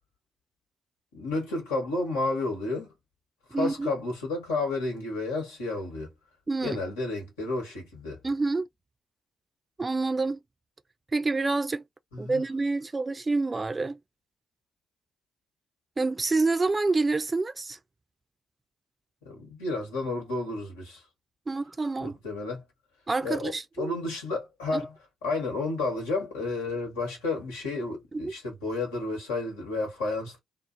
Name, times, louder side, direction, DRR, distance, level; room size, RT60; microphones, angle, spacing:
voice 1, 1.1-2.9 3.5-6.1 6.6-8.2 12.1-12.4 19.2-21.0 22.0-22.6 23.2-24.9 25.2-30.4, left 3 dB, 85° left, 1.2 m, -31 dB
voice 2, 3.5-3.9 6.5-6.8 8.2-8.7 9.8-10.4 11.1-11.8 12.2-14.0 16.0-17.8 21.5-22.2 23.1-23.9 28.1-28.3, right 3 dB, 30° right, 0.4 m, -27 dB
2.8 x 2.0 x 2.4 m
hypercardioid pair, 40°, 0 cm